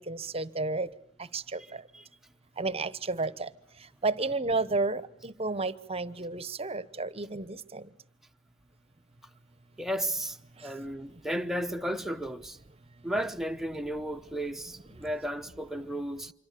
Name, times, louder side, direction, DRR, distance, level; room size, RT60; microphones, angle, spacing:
voice 1, 0.1-0.9 1.3-1.6 2.6-3.5 4.0-7.4 7.7-7.8, right 3 dB, 30° right, 1.0 m, -31 dB
voice 2, 1.6-2.1 9.8-12.6 13.0-16.3, equal, ahead, 1.0 m, -34 dB
26.5 x 24.5 x 6.8 m
head